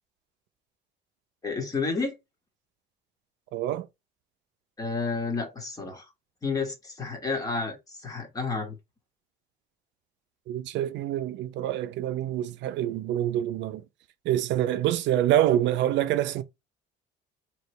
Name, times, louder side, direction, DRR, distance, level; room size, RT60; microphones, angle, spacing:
voice 1, 1.4-2.2 4.8-6.1 6.4-8.8, left 4 dB, 20° left, 1.3 m, -30 dB
voice 2, 3.5-3.9 10.5-13.8 14.2-16.4, right 12 dB, 70° right, 0.6 m, -26 dB
4.5 x 3.1 x 3.1 m
cardioid pair, 170°, 19 cm